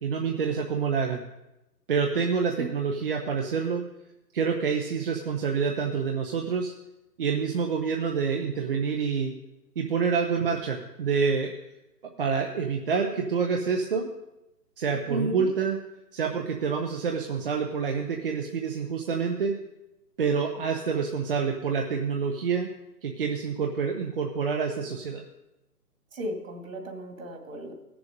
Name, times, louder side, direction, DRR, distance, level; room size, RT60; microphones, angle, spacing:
voice 1, 0.0-1.2 1.9-3.8 4.3-6.7 7.2-9.3 9.8-11.5 12.2-14.1 14.8-15.8 16.1-19.6 20.2-22.7 23.0-25.2, right 5 dB, 35° right, 2 dB, 0.8 m, -27 dB
voice 2, 15.1-15.5 26.1-27.7, right 1 dB, 55° right, 3 dB, 2.3 m, -34 dB
15.5 x 7.0 x 5.1 m, 0.93 s
hypercardioid pair, 155°, 47 cm